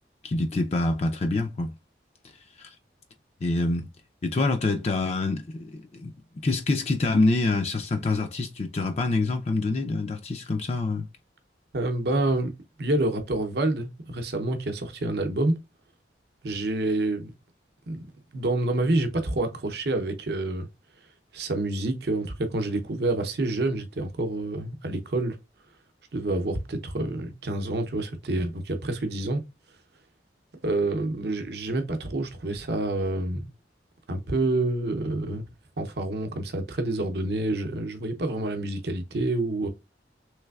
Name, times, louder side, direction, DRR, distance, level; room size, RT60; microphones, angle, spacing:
voice 1, 0.2-1.7 2.6-2.7 3.4-3.9 4.2-11.1, left 2 dB, 35° left, 0.4 m, -26 dB
voice 2, 11.7-12.5 12.8-15.6 16.4-17.3 17.9-20.7 21.3-25.4 26.1-29.4 30.6-33.4 34.1-35.4 35.8-39.7, right 2 dB, 60° right, 0.7 m, -28 dB
3.3 x 3.2 x 2.3 m
head